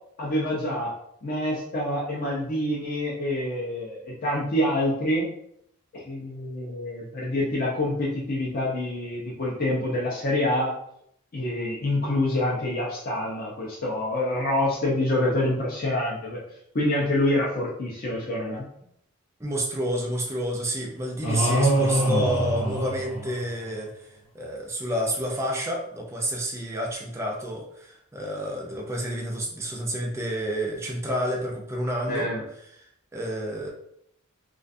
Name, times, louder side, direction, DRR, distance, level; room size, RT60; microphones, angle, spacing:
voice 1, 0.2-0.9 1.2-5.3 5.9-10.7 11.3-16.4 16.7-18.7 32.1-32.4, left 1 dB, 40° left, -4 dB, 0.5 m, -26 dB
voice 2, 19.4-23.9 24.3-32.3 33.1-33.7, equal, 15° right, -2 dB, 0.4 m, -29 dB
sound 1, 21.2-23.7, right 1 dB, 80° left, 1.0 m, -24 dB
2.3 x 2.3 x 2.5 m, 0.71 s
head